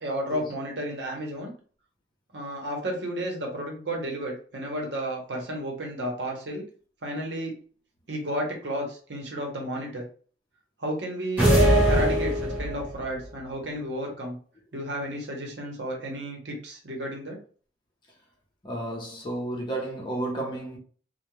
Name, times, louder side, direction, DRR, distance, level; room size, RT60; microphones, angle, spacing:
voice 1, 0.0-1.5 2.3-6.7 7.0-7.6 8.1-10.1 10.8-11.5 11.9-14.4 14.7-17.4, equal, 80° right, 0.9 m, -32 dB
sound 1, 11.4-12.9, right 1 dB, 10° right, 1.0 m, -21 dB
voice 2, 18.6-20.8, right 1 dB, 25° left, 0.7 m, -32 dB
2.2 x 2.2 x 3.0 m
head